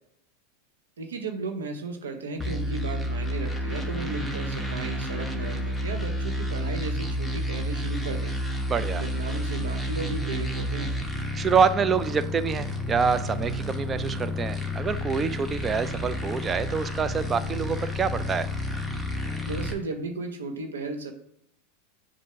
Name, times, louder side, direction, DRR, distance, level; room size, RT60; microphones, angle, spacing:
voice 1, 1.0-8.3 8.9-10.9 19.4-21.1, right 3 dB, 85° right, 5 dB, 0.9 m, -35 dB
sound 1, 2.4-19.7, equal, ahead, 1.0 m, -30 dB
voice 2, 8.7-9.0 11.3-18.5, right 6 dB, 25° right, 13 dB, 0.4 m, -26 dB
7.2 x 2.6 x 5.6 m, 0.73 s
hypercardioid pair, 100°, 0 cm